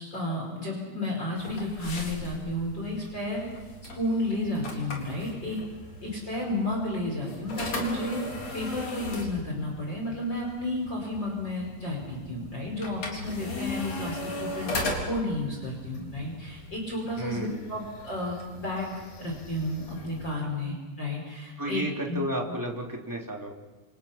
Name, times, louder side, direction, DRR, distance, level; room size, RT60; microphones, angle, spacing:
voice 1, 0.0-3.5 4.0-5.6 6.0-8.2 8.5-22.2, left 1 dB, 25° left, -1 dB, 5.3 m, -32 dB
sound 1, 1.4-20.3, left 2 dB, 45° left, 5.0 m, -38 dB
voice 2, 17.2-17.7 21.6-23.5, right 1 dB, 5° right, -1 dB, 2.6 m, -32 dB
28.5 x 28.0 x 5.9 m, 1.3 s
omnidirectional pair, 4.5 m